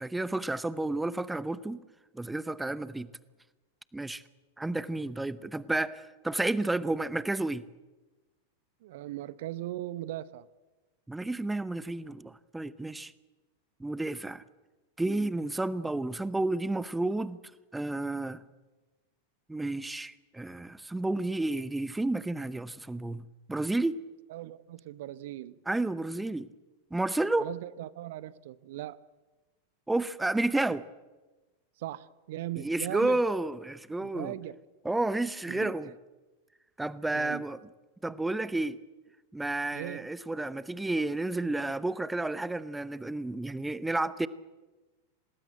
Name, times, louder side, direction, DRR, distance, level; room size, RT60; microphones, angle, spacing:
voice 1, 0.0-1.8 2.1-3.1 3.9-4.2 4.6-7.6 11.1-13.1 13.8-14.4 15.0-17.4 17.7-18.4 19.5-23.2 23.5-24.0 25.7-26.5 26.9-27.5 29.9-30.9 32.6-34.3 34.8-35.9 36.8-37.6 38.0-38.8 39.3-44.3, right 2 dB, 5° right, 0.8 m, -31 dB
voice 2, 8.8-10.5 24.3-25.6 27.4-29.0 31.8-33.2 34.0-34.6 35.5-35.9 37.1-37.4 39.7-40.1, right 14 dB, 55° right, 0.8 m, -39 dB
26.5 x 19.5 x 7.8 m
figure-of-eight pair, 90°, 0 cm